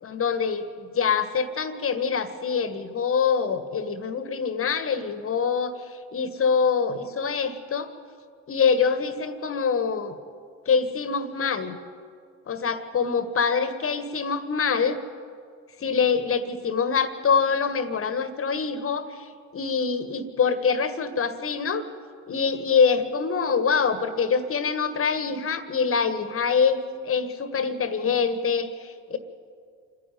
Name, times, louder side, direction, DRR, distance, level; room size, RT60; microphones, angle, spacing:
voice 1, 0.0-7.9 8.5-10.2 10.6-11.8 12.5-15.0 15.8-21.8 22.3-29.2, left 6 dB, 35° left, 11 dB, 1.6 m, -25 dB
27.0 x 10.5 x 9.4 m, 2.2 s
hypercardioid pair, 60°, 37 cm